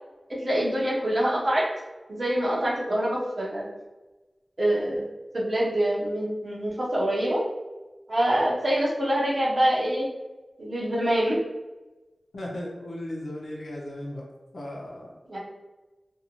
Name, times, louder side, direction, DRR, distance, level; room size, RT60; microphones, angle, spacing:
voice 1, 0.3-1.7 2.1-3.6 4.6-5.0 5.3-7.4 8.1-10.1 10.6-11.4 15.3-15.4, right 1 dB, 55° right, -5 dB, 0.7 m, -25 dB
voice 2, 12.3-14.2 14.5-15.2, left 1 dB, 85° left, -3 dB, 0.8 m, -36 dB
2.7 x 2.6 x 2.8 m, 1.1 s
wide cardioid pair, 85°, 0 cm